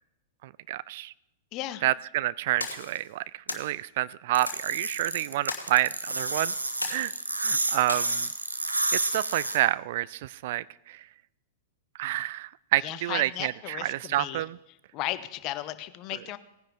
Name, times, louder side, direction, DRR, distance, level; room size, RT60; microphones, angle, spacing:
voice 1, 0.4-1.1 1.8-6.5 6.9-7.1 7.4-8.3 8.9-11.1 12.0-14.6, right 15 dB, 55° right, 21 dB, 0.3 m, -29 dB
voice 2, 1.5-1.8 12.8-14.4 14.9-16.4, left 15 dB, 40° left, 13 dB, 0.8 m, -35 dB
sound 1, 2.6-3.0 3.5-3.7 4.5-4.7 5.5-5.9 6.8-7.3 7.9-8.0, left 3 dB, 85° left, 1.4 m, -35 dB
sound 2, 4.3-9.6, right 2 dB, 90° right, 1.0 m, -30 dB
18.0 x 10.0 x 3.6 m, 0.94 s
figure-of-eight pair, 100°, 0 cm